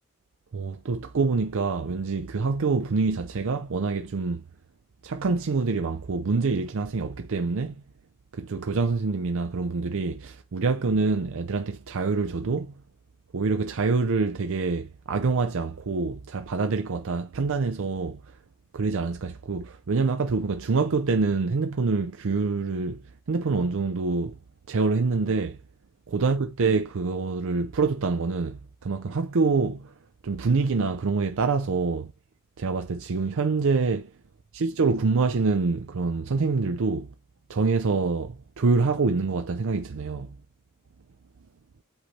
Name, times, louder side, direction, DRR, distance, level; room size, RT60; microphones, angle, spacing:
voice 1, 0.5-4.4 5.0-7.8 8.3-12.7 13.3-18.2 18.7-23.0 23.3-24.4 24.7-25.6 26.1-29.9 30.2-32.1 32.6-34.1 34.5-37.1 37.5-40.4, right 4 dB, 65° right, 0.5 m, -26 dB
7.9 x 4.2 x 3.2 m
head